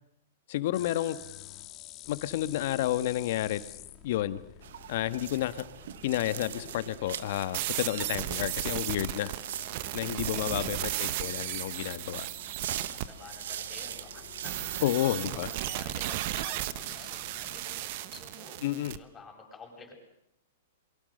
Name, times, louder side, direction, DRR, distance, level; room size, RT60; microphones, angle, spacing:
voice 1, 0.5-1.2 2.1-3.6 4.0-4.4 4.9-5.6 6.0-9.3 9.9-12.3 14.8-15.5 18.6-19.0, left 13 dB, 55° left, 13 dB, 1.5 m, -30 dB
sound 1, 0.7-17.6, left 11 dB, 30° left, 1.9 m, -51 dB
sound 2, 4.6-15.8, right 10 dB, 70° right, 1.2 m, -42 dB
sound 3, 7.5-13.1 14.4-19.0, right 14 dB, 50° right, 1.3 m, -35 dB
voice 2, 10.6-11.5 12.7-14.6 15.0-18.7 18.9-19.9, left 4 dB, 15° left, 1 dB, 7.6 m, -50 dB
27.5 x 23.5 x 6.7 m, 0.76 s
hypercardioid pair, 140°, 0 cm